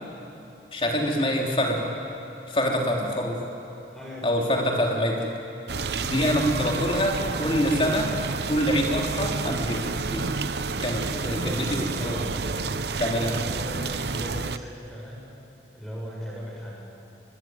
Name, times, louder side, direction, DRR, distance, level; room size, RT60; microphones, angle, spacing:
voice 1, 0.7-1.9 2.5-3.4 4.2-5.2 6.0-8.1 8.5-10.3 10.8-12.2 13.0-13.3, equal, 30° left, 0 dB, 3.5 m, -25 dB
voice 2, 3.9-5.0 6.7-6.9 10.8-12.9 13.3-15.2 15.7-17.0, equal, ahead, -4 dB, 7.3 m, -38 dB
sound 1, 5.7-14.6, right 4 dB, 70° right, 0.8 m, -30 dB
24.5 x 23.0 x 9.5 m, 3.0 s
head